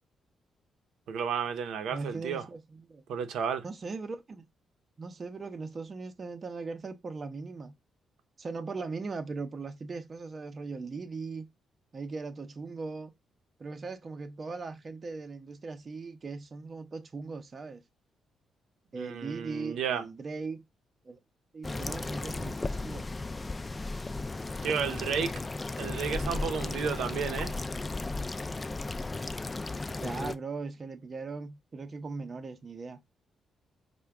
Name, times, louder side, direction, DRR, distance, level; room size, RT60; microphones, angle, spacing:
voice 1, 1.1-2.4 3.1-3.6 18.9-20.0 24.6-25.3 25.8-27.6, right 7 dB, 85° right, 0.7 m, -32 dB
voice 2, 1.9-3.0 3.6-4.4 5.0-7.7 8.4-11.5 11.9-13.1 13.6-17.8 18.9-20.6 21.0-21.2 21.5-23.0 27.5-27.8 30.0-33.0, right 4 dB, 40° right, 0.6 m, -39 dB
sound 1, 21.6-30.3, left 3 dB, 25° left, 0.4 m, -35 dB
4.7 x 2.2 x 3.4 m
cardioid pair, 90°, 0 cm